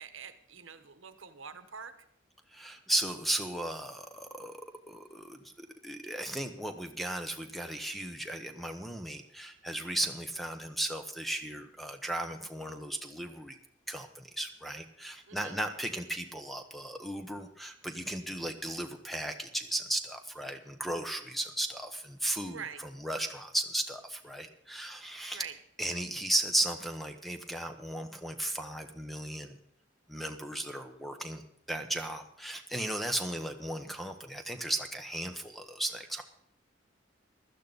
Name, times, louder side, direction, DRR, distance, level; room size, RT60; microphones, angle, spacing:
voice 1, 0.0-1.9 15.3-15.6 22.4-22.9 25.3-25.6, right 6 dB, 85° right, 11 dB, 1.1 m, -45 dB
voice 2, 2.5-13.6 13.9-22.6 23.0-25.4 25.8-29.6 30.1-31.4 31.7-36.2, right 1 dB, ahead, 7 dB, 1.0 m, -35 dB
16.0 x 12.0 x 4.0 m, 0.73 s
head